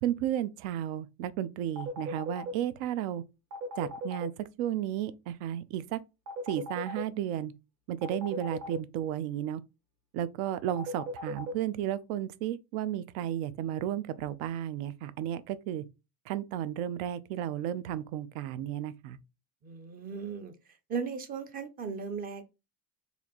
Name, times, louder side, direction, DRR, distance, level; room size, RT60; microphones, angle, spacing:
voice 1, 0.0-3.2 3.8-6.0 6.5-7.5 7.9-9.6 10.1-15.8 16.3-19.2, right 11 dB, 85° right, 0.6 m, -33 dB
sound 1, 1.8-2.5 3.5-4.3 6.3-7.0 8.0-8.8 10.8-11.5, right 1 dB, 45° right, 1.0 m, -37 dB
voice 2, 19.6-20.5 20.9-22.4, right 5 dB, 25° right, 0.4 m, -36 dB
4.1 x 2.7 x 2.9 m
cardioid pair, 170°, 38 cm